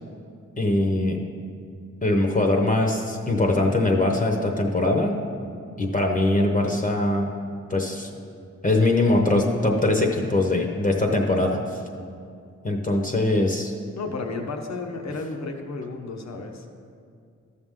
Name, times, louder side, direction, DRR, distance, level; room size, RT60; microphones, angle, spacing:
voice 1, 0.6-1.2 2.0-5.2 5.8-7.3 7.7-8.1 8.6-11.6 12.6-13.7, left 2 dB, 30° left, 2 dB, 0.9 m, -22 dB
voice 2, 13.9-16.7, left 3 dB, 65° left, 4 dB, 1.0 m, -32 dB
12.5 x 6.4 x 3.7 m, 2.3 s
wide cardioid pair, 95°, 29 cm